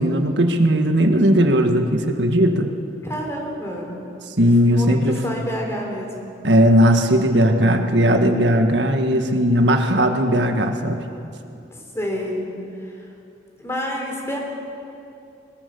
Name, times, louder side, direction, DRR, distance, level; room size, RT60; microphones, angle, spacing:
voice 1, 0.0-2.7 4.4-5.2 6.4-11.0, equal, 85° right, 5 dB, 1.6 m, -17 dB
voice 2, 3.0-3.9 4.6-6.3 9.6-10.1 11.7-12.4 12.9-13.1 13.6-14.4, equal, 15° left, 0 dB, 4.2 m, -29 dB
21.5 x 21.0 x 7.0 m, 2.6 s
head